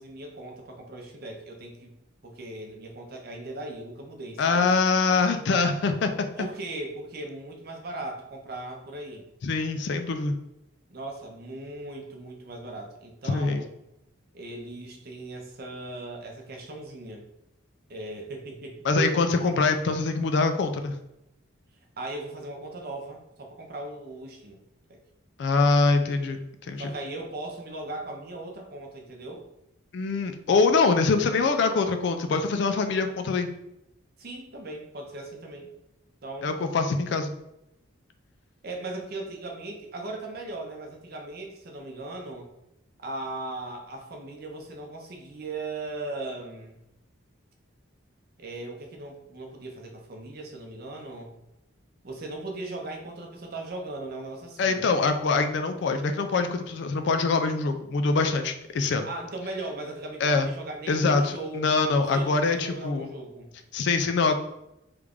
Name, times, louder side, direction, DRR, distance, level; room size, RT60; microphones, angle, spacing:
voice 1, 0.0-1.9 2.2-4.7 6.3-9.3 10.9-13.7 14.3-17.3 17.9-19.5 22.0-24.6 24.9-25.0 26.8-29.4 34.2-35.7 36.2-36.7 38.6-42.5 43.0-46.8 48.4-51.4 52.0-54.9 59.0-61.8 62.1-63.5, right 2 dB, 45° right, 2 dB, 0.6 m, -38 dB
voice 2, 4.4-6.1 6.4-6.5 9.4-10.4 13.2-13.6 18.8-20.9 25.4-26.9 29.9-33.5 36.4-37.3 54.6-59.1 60.2-60.5 60.9-63.1 63.7-64.3, left 4 dB, 55° left, 7 dB, 0.3 m, -24 dB
3.1 x 2.4 x 3.5 m, 0.87 s
head